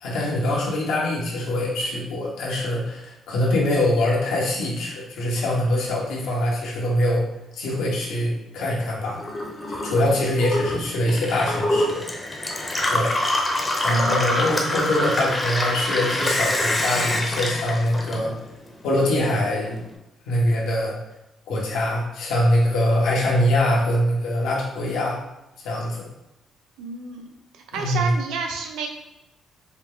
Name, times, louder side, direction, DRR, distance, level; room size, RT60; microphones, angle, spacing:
voice 1, 0.0-7.2 7.5-9.2 9.7-12.0 12.9-13.2 13.8-18.3 18.8-19.8 20.3-20.9 21.5-25.2 25.6-26.1 27.7-28.1, left 1 dB, 85° left, -4 dB, 1.2 m, -23 dB
Gurgling / Water tap faucet / Sink (filling or washing), 9.1-18.7 19.0-19.8, left 1 dB, 20° left, 0.8 m, -25 dB
voice 2, 13.9-14.4 26.8-27.3 27.5-28.9, right 4 dB, 90° right, 3 dB, 0.6 m, -30 dB
4.7 x 2.1 x 3.7 m, 0.93 s
cardioid pair, 90°, 0 cm